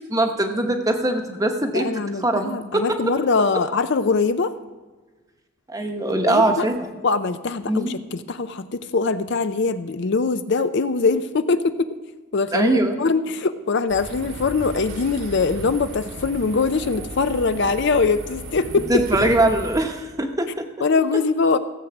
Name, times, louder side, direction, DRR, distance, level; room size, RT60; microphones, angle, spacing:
voice 1, 0.1-3.1 5.7-6.9 7.6-7.9 12.5-13.0 18.9-20.6, right 1 dB, 15° right, 5 dB, 0.9 m, -22 dB
voice 2, 1.7-4.5 6.2-6.6 7.0-11.9 12.3-18.9 20.8-21.6, left 4 dB, 50° left, 11 dB, 0.5 m, -22 dB
sound 1, 13.9-19.9, right 1 dB, 75° right, 2.2 m, -35 dB
15.5 x 7.8 x 6.0 m, 1.3 s
head